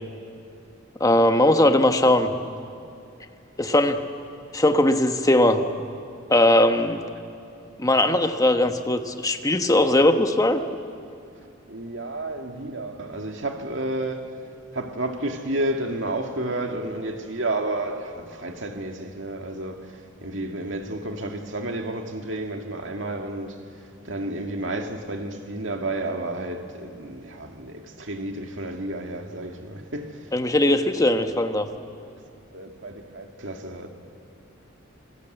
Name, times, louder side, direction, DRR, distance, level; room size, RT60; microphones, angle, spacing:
voice 1, 1.0-2.3 3.6-4.0 4.5-5.6 6.3-7.0 7.8-10.6 30.3-31.7, left 1 dB, 20° left, 1.3 m, -19 dB
voice 2, 11.7-14.4 14.7-23.6 24.0-30.3 32.5-33.9, right 1 dB, 75° right, 2.2 m, -31 dB
27.5 x 20.5 x 8.1 m
head